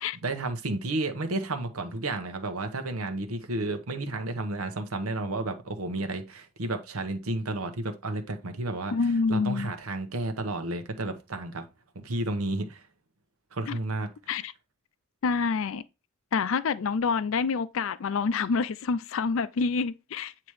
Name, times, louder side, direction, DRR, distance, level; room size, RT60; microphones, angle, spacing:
voice 1, 0.2-8.9 9.3-11.7 11.9-12.9 13.5-14.1, right 2 dB, 80° right, 1.0 m, -32 dB
voice 2, 8.9-9.7 13.7-13.8 14.3-14.5 15.2-15.8 16.3-20.3, left 5 dB, 65° left, 0.4 m, -27 dB
8.7 x 2.9 x 4.8 m
head